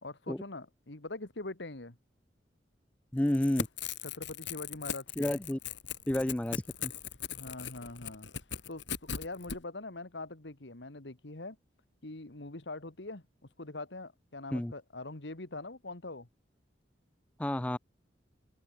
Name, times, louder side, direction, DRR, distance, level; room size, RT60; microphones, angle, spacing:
voice 1, 0.0-2.0 4.0-5.4 7.3-8.3 8.7-8.8 9.1-11.6 12.0-13.2 13.6-16.3, left 2 dB, 75° left, 2.0 m, -43 dB
voice 2, 3.1-3.7 5.2-5.6 6.1-6.9 14.5-14.7 17.4-17.8, left 1 dB, 5° left, 0.4 m, -30 dB
Crackle / Tearing, 3.2-9.6, left 7 dB, 90° left, 3.4 m, -39 dB
open air
head